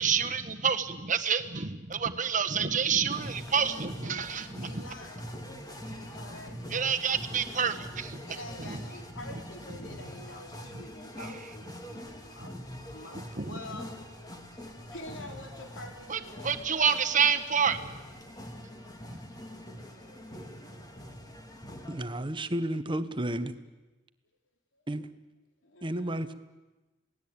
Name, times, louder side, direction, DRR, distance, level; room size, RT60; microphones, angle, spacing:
voice 1, 0.0-4.8 5.9-6.2 6.7-8.2 8.6-8.8 10.7-10.8 13.1-13.6 16.1-17.8 19.1-19.2, right 7 dB, 45° right, 7 dB, 1.4 m, -28 dB
sound 1, 3.1-22.0, equal, 20° left, 2.6 m, -44 dB
voice 2, 4.0-5.3 6.0-6.6 8.2-13.9 14.9-16.6 24.7-24.8 25.6-26.1, left 2 dB, 85° left, 4 dB, 3.3 m, -47 dB
voice 3, 21.9-23.5 24.9-25.1 25.8-26.3, right 1 dB, 25° right, 11 dB, 1.2 m, -32 dB
27.5 x 18.5 x 8.8 m, 1.1 s
head